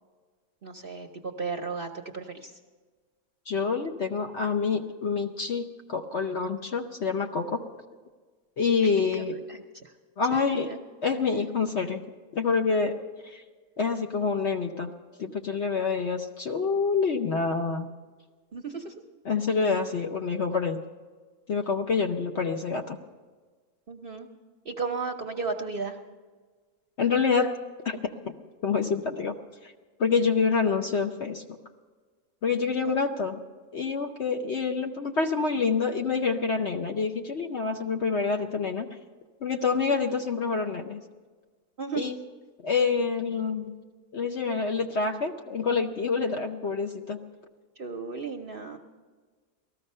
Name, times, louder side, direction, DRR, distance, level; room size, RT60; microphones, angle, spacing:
voice 1, 0.6-2.6 8.8-8.9 9.5-9.9 10.3-10.8 18.5-18.9 23.9-24.3 24.6-26.0 32.8-33.0 41.8-42.1 47.8-48.8, right 4 dB, 45° right, 4 dB, 0.7 m, -35 dB
voice 2, 3.5-7.6 8.6-9.4 10.2-10.7 11.0-12.0 12.3-13.0 13.2-13.4 13.8-14.9 15.2-17.9 19.3-20.8 21.5-23.0 27.0-27.5 27.8-28.3 28.6-29.4 29.6-29.7 30.0-31.4 32.4-33.4 33.7-39.0 39.4-41.0 42.0-42.2 42.6-43.7 44.1-47.2, left 5 dB, 55° left, 4 dB, 0.8 m, -27 dB
18.5 x 14.0 x 5.5 m, 1.4 s
omnidirectional pair, 1.7 m